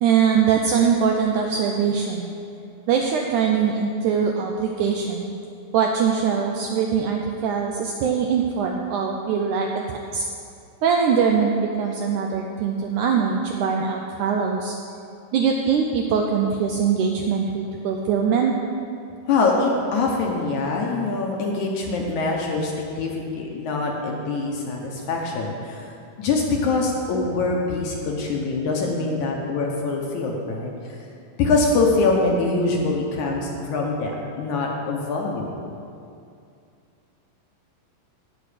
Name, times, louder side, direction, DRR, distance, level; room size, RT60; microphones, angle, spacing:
voice 1, 0.0-2.3 2.9-5.3 5.7-10.2 10.8-14.7 15.3-18.5, right 6 dB, 85° right, 1 dB, 1.8 m, -22 dB
voice 2, 19.3-25.9 26.2-30.7 31.4-35.5, left 3 dB, 70° left, 0 dB, 2.1 m, -24 dB
17.0 x 6.1 x 5.0 m, 2.5 s
omnidirectional pair, 4.2 m